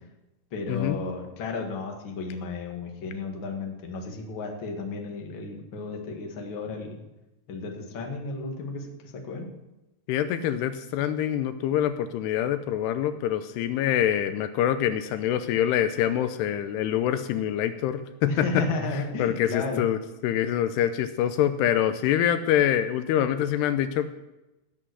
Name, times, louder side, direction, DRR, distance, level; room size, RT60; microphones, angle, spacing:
voice 1, 0.5-7.0 7.5-9.5 18.3-19.8, left 3 dB, 40° left, 1 dB, 2.0 m, -33 dB
voice 2, 10.1-18.6 19.2-20.0 20.2-24.1, left 10 dB, 85° left, 10 dB, 2.8 m, -25 dB
16.5 x 7.9 x 6.3 m, 0.97 s
omnidirectional pair, 4.8 m